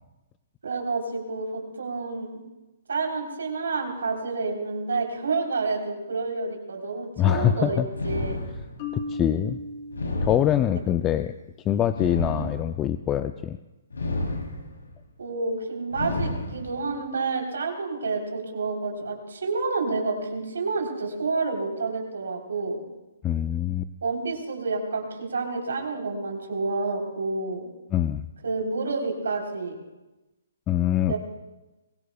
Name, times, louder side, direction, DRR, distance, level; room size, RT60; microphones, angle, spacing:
voice 1, 0.6-2.4 2.9-8.4 12.2-12.5 15.2-22.8 24.0-27.7 28.4-29.8 31.1-31.2, right 3 dB, 80° right, 1 dB, 3.5 m, -29 dB
voice 2, 7.2-7.9 8.9-9.6 10.2-11.3 11.6-13.6 23.2-23.9 27.9-28.3 30.7-31.2, left 11 dB, 20° left, 11 dB, 0.4 m, -24 dB
sound 1, 7.9-9.0 9.9-11.0 11.9-13.0 13.9-14.9 15.9-16.9, left 2 dB, 90° left, 3.1 m, -31 dB
Marimba xylophone, 8.8-10.8, left 2 dB, 40° left, 4.2 m, -36 dB
23.0 x 18.0 x 2.3 m, 1.0 s
hypercardioid pair, 140°, 0 cm